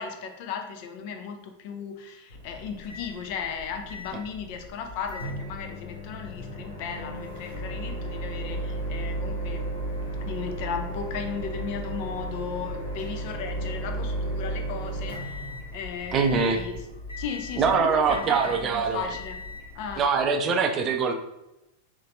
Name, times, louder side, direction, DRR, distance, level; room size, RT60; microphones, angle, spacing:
voice 1, 0.0-9.7 10.2-16.8 17.2-19.4 19.7-20.0, left 6 dB, 45° left, 5 dB, 0.5 m, -36 dB
Microwave oven, 2.3-20.3, right 1 dB, 85° left, 1.2 m, -35 dB
voice 2, 16.1-16.6 17.6-19.1 20.0-21.1, right 5 dB, 30° right, 5 dB, 0.4 m, -23 dB
4.0 x 3.1 x 2.5 m, 0.90 s
figure-of-eight pair, 90°, 0 cm